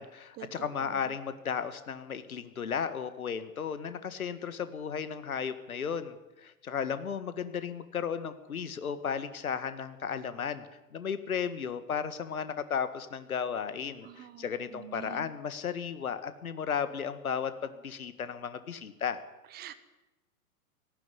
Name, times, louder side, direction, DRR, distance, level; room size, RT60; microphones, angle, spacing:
voice 1, 0.0-10.7 10.9-19.2, left 7 dB, 65° left, 12 dB, 1.8 m, -34 dB
voice 2, 14.0-14.4 14.7-15.3 19.5-19.7, right 12 dB, 20° right, 12 dB, 1.3 m, -45 dB
17.5 x 15.5 x 9.7 m, 1.1 s
figure-of-eight pair, 105°, 46 cm